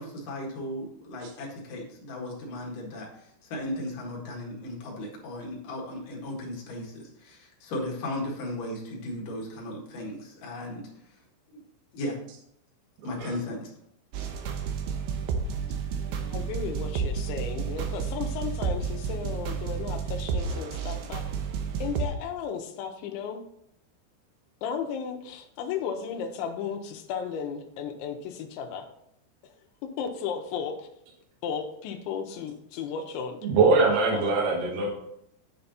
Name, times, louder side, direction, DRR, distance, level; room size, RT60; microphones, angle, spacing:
voice 1, 0.0-10.8 11.9-12.2 13.0-13.7, left 1 dB, 60° left, -2 dB, 2.4 m, -36 dB
voice 2, 13.0-13.3 33.4-34.9, right 3 dB, 60° right, -4 dB, 3.4 m, -22 dB
sound 1, 14.1-22.1, right 6 dB, 90° right, 2.1 m, -31 dB
voice 3, 16.3-21.2 21.8-23.4 24.6-28.9 29.8-30.9 31.4-33.4 34.0-34.5, left 7 dB, 80° left, 4 dB, 2.8 m, -34 dB
9.7 x 5.7 x 4.0 m, 0.75 s
omnidirectional pair, 5.9 m